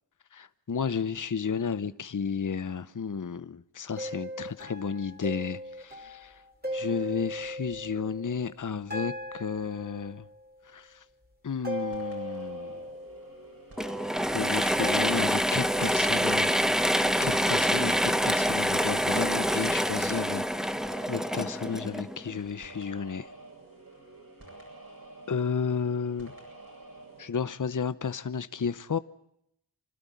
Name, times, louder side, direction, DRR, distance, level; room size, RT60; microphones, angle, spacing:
voice 1, 0.3-6.3 6.7-10.2 10.7-10.9 11.4-12.8 14.3-20.4 21.1-23.3 25.3-26.3 27.2-29.0, left 6 dB, 45° left, 0.8 m, -32 dB
sound 1, 4.0-8.5 8.9-10.5 11.6-13.7 14.8-15.2, equal, 20° right, 4.1 m, -38 dB
sound 2, 11.7-27.3, right 2 dB, 50° right, 8.0 m, -49 dB
Mechanisms / Drill, 13.8-22.4, equal, ahead, 0.9 m, -26 dB
28.0 x 12.5 x 9.3 m
wide cardioid pair, 45°, 44 cm